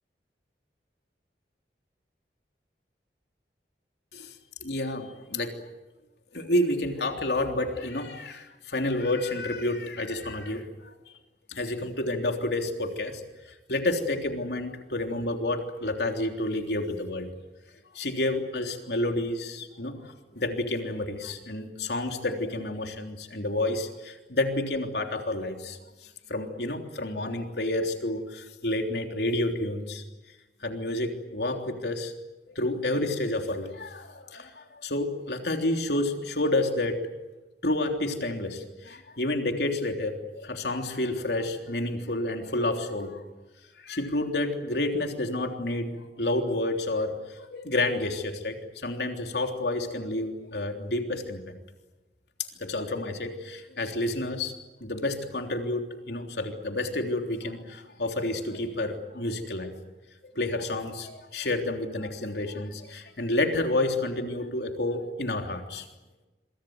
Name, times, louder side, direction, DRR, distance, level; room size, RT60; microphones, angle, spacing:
voice 1, 4.6-5.5 6.3-10.9 11.5-13.2 13.7-17.3 17.9-30.0 30.6-32.1 32.5-37.0 37.6-43.2 43.8-51.6 52.6-54.5 54.8-59.7 60.3-65.9, left 2 dB, 75° left, 4 dB, 3.4 m, -30 dB
27.0 x 24.0 x 7.9 m, 1.1 s
head